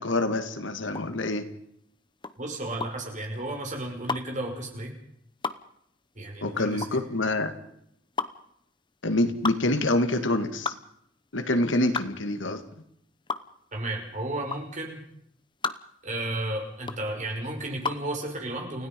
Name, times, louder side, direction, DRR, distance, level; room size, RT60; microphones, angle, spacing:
voice 1, 0.0-1.5 6.4-7.5 9.0-10.7 11.3-12.6, left 1 dB, 75° left, 9 dB, 2.1 m, -26 dB
sound 1, 0.9-18.1, left 4 dB, 25° left, 0.9 m, -35 dB
voice 2, 2.4-4.9 6.1-7.0 13.7-15.0 16.0-18.9, right 1 dB, 40° right, 1 dB, 5.7 m, -33 dB
29.5 x 16.5 x 5.4 m, 0.71 s
head